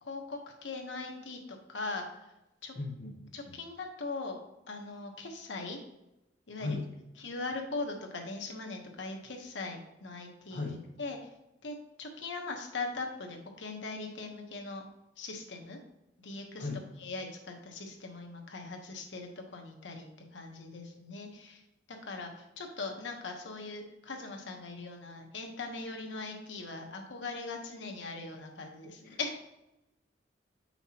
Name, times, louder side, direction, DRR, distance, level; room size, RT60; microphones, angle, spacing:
voice 1, 0.0-2.1 2.6-2.8 3.3-4.4 4.7-5.8 6.5-6.7 7.2-11.3 11.6-14.8 15.2-15.8 16.2-16.7 17.0-21.6 21.9-29.4, left 3 dB, 85° left, 3 dB, 1.1 m, -40 dB
voice 2, 2.7-3.6 6.6-6.9 10.5-10.8 16.6-16.9 29.0-29.2, left 3 dB, 50° left, -2 dB, 0.8 m, -37 dB
7.0 x 5.7 x 2.9 m, 0.92 s
head